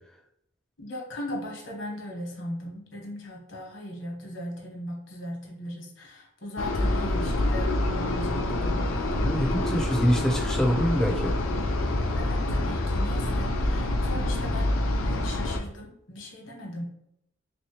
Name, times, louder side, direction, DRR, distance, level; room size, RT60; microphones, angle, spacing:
voice 1, 0.8-9.3 12.1-16.8, left 1 dB, 70° left, -2 dB, 1.2 m, -38 dB
sound 1, 6.6-15.6, left 1 dB, 85° left, 0.5 m, -26 dB
voice 2, 9.1-11.3, equal, 5° left, -1 dB, 0.5 m, -25 dB
3.5 x 3.1 x 2.9 m, 0.77 s
head